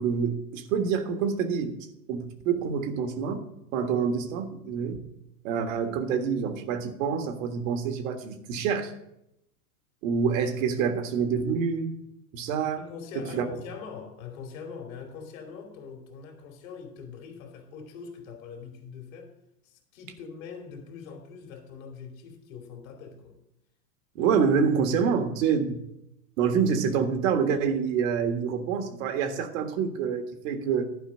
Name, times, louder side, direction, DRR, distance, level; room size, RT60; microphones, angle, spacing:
voice 1, 0.0-1.8 2.1-3.4 3.7-5.0 5.4-8.9 10.0-11.9 12.3-12.8 13.2-13.5 24.2-25.8 26.4-31.1, right 6 dB, 60° right, 1.7 m, -27 dB
voice 2, 12.8-19.3 19.6-23.4, left 6 dB, 60° left, 2.7 m, -43 dB
11.5 x 5.1 x 7.5 m
hypercardioid pair, 110°, 45 cm